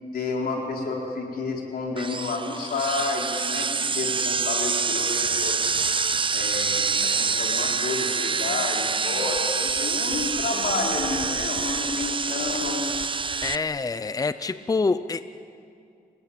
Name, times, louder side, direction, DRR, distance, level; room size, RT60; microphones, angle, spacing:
voice 1, 0.1-3.7 3.9-5.7 6.3-12.8, left 3 dB, 85° left, -1 dB, 5.0 m, -30 dB
sound 1, 2.0-13.6, right 5 dB, 35° right, 0.7 m, -26 dB
sound 2, 4.2-4.3 4.6-4.8 5.0-5.1 10.0-13.1, left 4 dB, 55° left, 2.5 m, -40 dB
voice 2, 13.4-15.2, left 4 dB, 25° left, 13 dB, 0.6 m, -26 dB
29.0 x 19.5 x 9.1 m, 2.4 s
cardioid pair, 105°, 16 cm